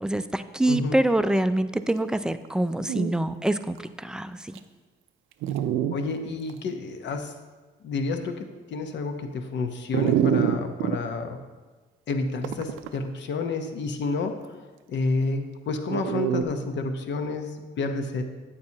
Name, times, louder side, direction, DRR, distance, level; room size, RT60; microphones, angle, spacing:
voice 1, 0.0-4.6, right 1 dB, 5° right, 11 dB, 0.3 m, -25 dB
Dog, 2.4-2.5 2.8-3.1 3.8-3.9 4.5-4.6 5.4-6.0 6.5-6.6 9.9-11.0 12.4-13.0 15.9-16.4, right 9 dB, 85° right, 0.4 m, -25 dB
voice 2, 5.9-7.3 7.8-11.4 12.1-14.5 14.9-18.2, left 3 dB, 65° left, 6 dB, 0.9 m, -30 dB
8.8 x 8.6 x 2.9 m, 1.3 s
cardioid pair, 90°, 20 cm